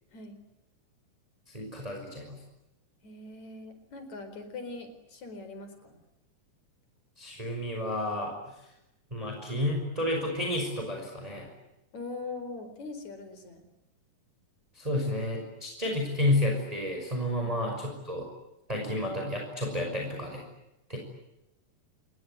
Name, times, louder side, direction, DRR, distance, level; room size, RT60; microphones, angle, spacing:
voice 1, 1.5-2.4 7.2-8.3 9.1-11.5 14.8-18.3 18.7-20.4 20.9-21.0, left 1 dB, 10° right, 1 dB, 5.7 m, -31 dB
voice 2, 3.0-6.0 11.9-13.7 17.4-17.5, left 3 dB, 55° left, 9 dB, 5.8 m, -41 dB
28.0 x 22.0 x 9.6 m, 0.92 s
omnidirectional pair, 3.8 m